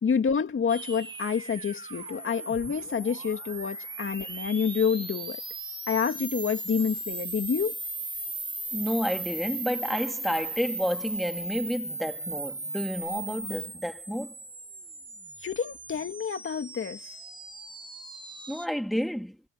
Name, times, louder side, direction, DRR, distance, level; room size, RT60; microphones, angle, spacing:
voice 1, 0.0-5.4 5.9-7.8 15.4-17.2, left 6 dB, 45° left, 2.1 m, -28 dB
sound 1, 0.7-18.7, right 2 dB, 15° right, 1.7 m, -37 dB
voice 2, 8.7-14.3 18.5-19.4, equal, ahead, 2.6 m, -30 dB
cardioid pair, 90°, 30 cm